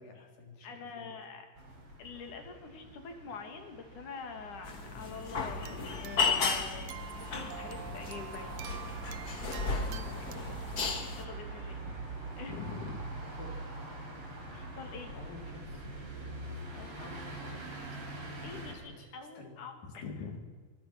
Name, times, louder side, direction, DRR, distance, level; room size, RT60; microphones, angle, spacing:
voice 1, 0.0-1.1 9.6-11.2 13.2-14.1 14.4-14.7 15.1-16.7 17.0-17.6 18.5-19.1 19.4-19.6 20.0-20.1, left 3 dB, 90° left, 2 dB, 5.6 m, -51 dB
voice 2, 0.6-1.5 2.0-8.6 11.2-12.1 12.4-13.1 14.7-15.1 16.7-17.0 18.4-20.4, left 5 dB, 65° left, 5 dB, 4.1 m, -45 dB
sound 1, 1.6-18.7, right 2 dB, 40° right, 5.4 m, -44 dB
sound 2, 4.6-11.2, left 5 dB, 35° left, 1.8 m, -35 dB
sound 3, 5.4-10.4, right 11 dB, 65° right, 1.6 m, -48 dB
24.0 x 24.0 x 6.1 m, 1.5 s
omnidirectional pair, 3.8 m